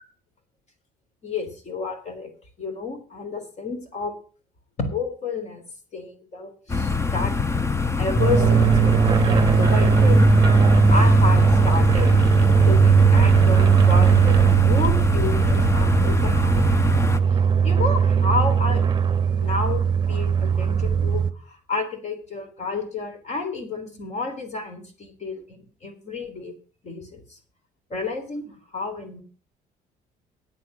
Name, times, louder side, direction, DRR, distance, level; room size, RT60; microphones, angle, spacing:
voice 1, 1.2-2.3 2.6-4.1 4.8-5.7 5.9-7.3 8.0-10.2 10.9-12.2 12.6-16.6 17.6-18.8 19.3-26.5 26.8-27.4 27.9-29.2, left 4 dB, 45° left, 5 dB, 3.6 m, -30 dB
sound 1, 6.7-17.2, left 4 dB, 15° left, 0.7 m, -24 dB
sound 2, 8.2-21.3, right 6 dB, 25° right, 0.9 m, -18 dB
9.6 x 8.4 x 6.2 m, 0.40 s
cardioid pair, 110°, 17 cm